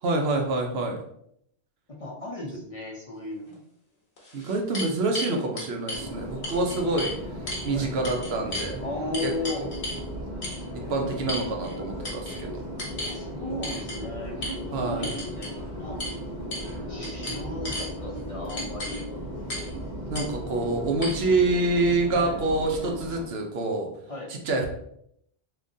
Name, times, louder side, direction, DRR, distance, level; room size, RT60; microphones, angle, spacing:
voice 1, 0.0-1.0 4.3-7.2 7.6-8.8 9.2-9.7 10.7-12.6 14.7-15.2 20.1-23.9 24.3-24.7, right 2 dB, 70° right, 2 dB, 0.9 m, -27 dB
voice 2, 2.0-3.6 7.7-7.9 8.8-9.7 13.0-16.0 16.9-19.1 22.1-22.3 24.1-24.3, left 2 dB, 40° left, -3 dB, 0.6 m, -35 dB
sound 1, 3.5-3.6 4.2-6.0 6.4-7.2 7.5-7.7 8.0-8.7 9.1-10.0 10.4-10.6 11.3-11.8 12.0-12.4 12.8-13.2 13.6-14.0 14.4-14.6 15.0-15.5 16.0-16.2 16.5-16.7 17.0-17.9 18.5-19.0 19.5-19.7 20.1-20.3 21.0-21.1, left 1 dB, 80° left, 1.3 m, -34 dB
Subway metro underground, 5.9-23.2, equal, 45° right, 0.9 m, -36 dB
3.6 x 3.0 x 2.6 m, 0.73 s
omnidirectional pair, 1.1 m